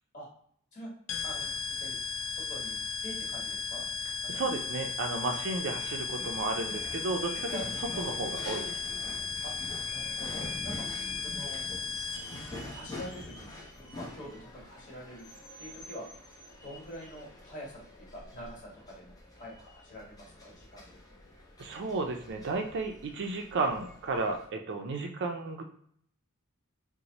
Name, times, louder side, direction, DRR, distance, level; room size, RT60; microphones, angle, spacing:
sound 1, 1.1-12.5, left 5 dB, 55° left, 0.5 m, -36 dB
voice 1, 1.2-2.0 2.2-3.9 4.2-4.4 5.3-5.4 7.5-7.7 9.4-9.5 9.9-10.9 11.2-11.6 12.7-13.5 13.8-15.3 15.6-16.0 16.6-21.2, equal, 35° left, -3 dB, 1.3 m, -45 dB
voice 2, 4.3-7.6 8.0-8.8 21.6-25.6, right 3 dB, 50° right, 5 dB, 0.4 m, -33 dB
sound 2, 5.7-24.5, left 2 dB, 15° left, 0.6 m, -46 dB
2.9 x 2.1 x 3.9 m, 0.65 s
head